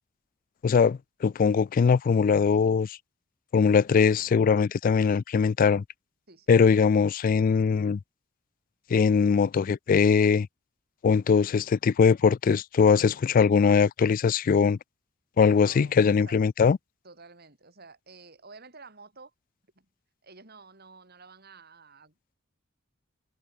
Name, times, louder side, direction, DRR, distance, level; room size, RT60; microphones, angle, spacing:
voice 1, 0.6-3.0 3.5-5.8 6.5-8.0 8.9-10.5 11.0-14.8 15.4-16.8, left 6 dB, 45° left, 0.3 m, -21 dB
voice 2, 15.6-16.4 17.0-19.3 19.7-19.9 20.2-22.1, right 4 dB, 50° right, 6.5 m, -51 dB
head